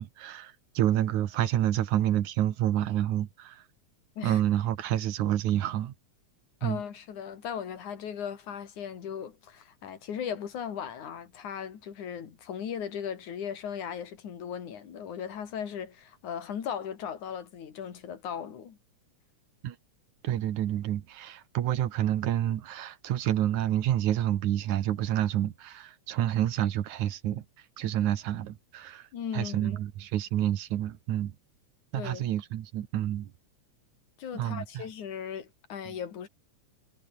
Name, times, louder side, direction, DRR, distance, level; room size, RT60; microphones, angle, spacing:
voice 1, 0.0-3.6 4.2-5.9 6.6-6.8 19.6-19.8 20.2-27.4 27.8-29.0 29.3-31.3 31.9-33.3 34.3-34.8 35.9-36.0, right 12 dB, 80° right, 2.8 m, -28 dB
voice 2, 6.6-18.8 29.1-29.8 31.9-32.3 34.2-36.3, left 8 dB, 85° left, 4.0 m, -37 dB
omnidirectional pair, 3.4 m